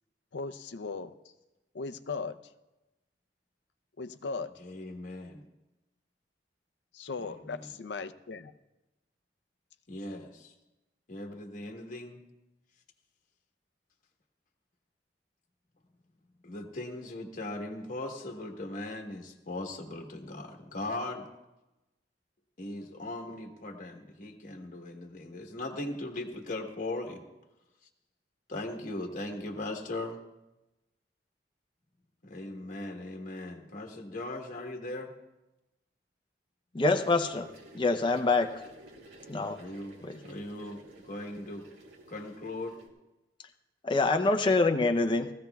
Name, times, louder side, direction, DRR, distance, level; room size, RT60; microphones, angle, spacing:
voice 1, 0.3-1.1 1.7-2.4 4.0-4.5 6.9-8.5, left 4 dB, 75° left, 11 dB, 0.6 m, -37 dB
voice 2, 4.6-5.4 7.2-7.6 9.9-10.5 11.1-12.2 16.4-21.3 22.6-27.2 28.5-30.2 32.2-35.1 39.6-40.0 40.2-41.6 42.1-42.7, left 2 dB, 50° left, 2 dB, 1.2 m, -39 dB
voice 3, 36.7-37.5 37.7-38.5 39.3-39.6 40.0-40.2 43.8-45.3, left 3 dB, 30° left, 5 dB, 0.6 m, -25 dB
sound 1, 37.0-42.9, right 1 dB, 90° right, 2.4 m, -53 dB
19.5 x 15.0 x 2.3 m, 1.0 s
head